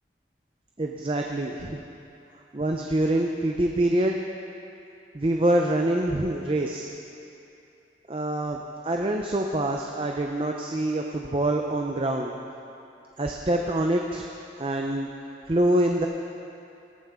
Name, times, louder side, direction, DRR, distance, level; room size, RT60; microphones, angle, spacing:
voice 1, 0.8-1.8 2.5-4.2 5.1-6.9 8.1-12.4 13.2-14.3 14.6-15.1 15.5-16.1, right 1 dB, 30° right, 1 dB, 0.6 m, -25 dB
19.5 x 9.4 x 3.6 m, 2.7 s
head